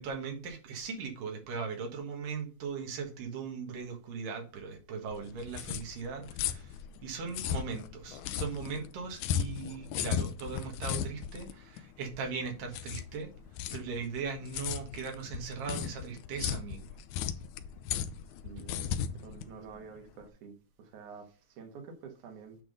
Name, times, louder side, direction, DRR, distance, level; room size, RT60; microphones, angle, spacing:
voice 1, 0.0-6.8 7.0-13.3 13.7-16.8, right 5 dB, 85° right, 3 dB, 3.2 m, -39 dB
sound 1, 5.1-20.3, left 9 dB, 80° left, 1.9 m, -36 dB
voice 2, 18.4-22.6, right 6 dB, 70° right, 3 dB, 2.9 m, -49 dB
10.0 x 3.6 x 6.5 m, 0.37 s
omnidirectional pair, 3.8 m